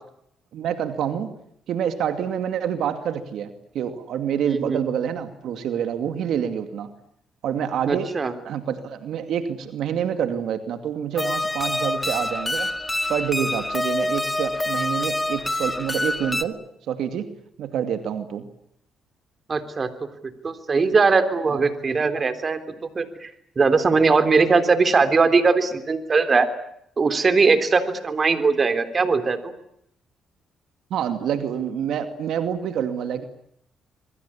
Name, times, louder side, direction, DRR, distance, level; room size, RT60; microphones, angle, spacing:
voice 1, 0.5-1.3 1.7-6.9 7.4-8.1 8.4-12.7 13.1-16.6 16.9-17.3 17.6-18.5 21.5-21.7 30.9-33.3, right 8 dB, 75° right, 8 dB, 2.4 m, -27 dB
voice 2, 4.4-4.8 7.9-8.3 19.5-19.9 20.4-22.6 23.0-23.3 23.6-26.5 27.0-29.5, right 4 dB, 35° right, 10 dB, 3.5 m, -20 dB
sound 1, 11.2-16.4, left 1 dB, 15° left, 1.7 m, -26 dB
27.0 x 23.0 x 8.7 m, 0.73 s
cardioid pair, 90°, 0 cm